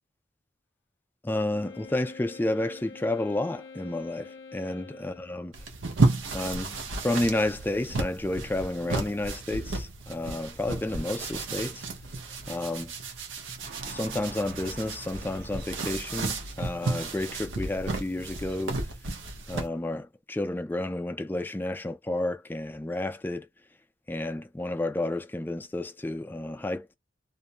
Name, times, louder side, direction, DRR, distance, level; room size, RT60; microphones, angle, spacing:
voice 1, 1.2-5.5 6.3-6.8 7.0-11.9 12.5-12.9 13.9-18.8 19.5-23.5 24.1-26.9, left 1 dB, 10° left, 0.3 m, -31 dB
Wind instrument woodwind instrument, 1.5-5.6, left 4 dB, 65° left, 0.6 m, -46 dB
sound 1, 5.5-19.7, right 3 dB, 85° right, 0.8 m, -32 dB
sound 2, 13.6-18.9, right 2 dB, 50° right, 0.5 m, -46 dB
2.6 x 2.0 x 2.7 m
head